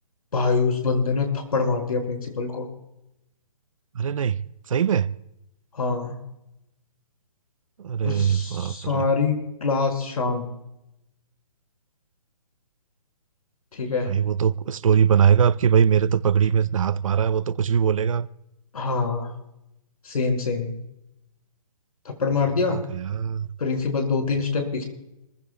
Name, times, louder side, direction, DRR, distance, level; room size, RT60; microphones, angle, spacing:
voice 1, 0.3-2.7 5.7-6.1 8.0-10.4 13.7-14.1 18.7-19.3 20.1-20.7 22.1-22.8 23.6-24.8, left 4 dB, 70° left, 5.3 m, -25 dB
voice 2, 3.9-4.4 4.7-5.1 7.8-9.1 14.1-18.3 22.7-23.5, right 8 dB, 55° right, 0.7 m, -21 dB
27.0 x 15.0 x 2.2 m
hypercardioid pair, 150°, 20 cm